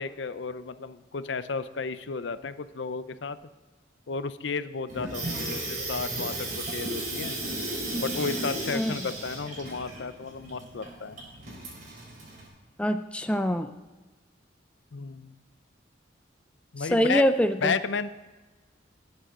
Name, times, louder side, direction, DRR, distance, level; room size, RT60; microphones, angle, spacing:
voice 1, 0.0-3.4 4.1-7.4 8.0-11.2 14.9-15.4 16.7-17.2 17.6-18.1, left 5 dB, 70° left, 13 dB, 0.6 m, -33 dB
Water tap faucet / Sink (filling or washing), 4.9-12.5, right 1 dB, 45° right, 4.3 m, -34 dB
voice 2, 12.8-13.7 16.8-17.7, equal, 5° left, 8 dB, 0.4 m, -24 dB
19.0 x 8.3 x 3.8 m, 1.2 s
head